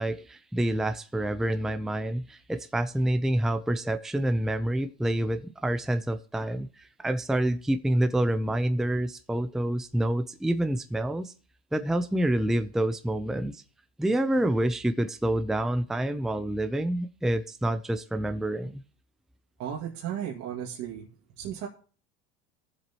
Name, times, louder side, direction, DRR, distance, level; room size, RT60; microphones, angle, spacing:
voice 1, 0.0-11.3 11.7-13.6 14.0-18.8, right 1 dB, ahead, 0.6 m, -27 dB
voice 2, 19.6-21.1 21.4-21.7, right 9 dB, 60° right, 2.2 m, -34 dB
20.0 x 7.4 x 3.0 m
supercardioid pair, 110°, 32 cm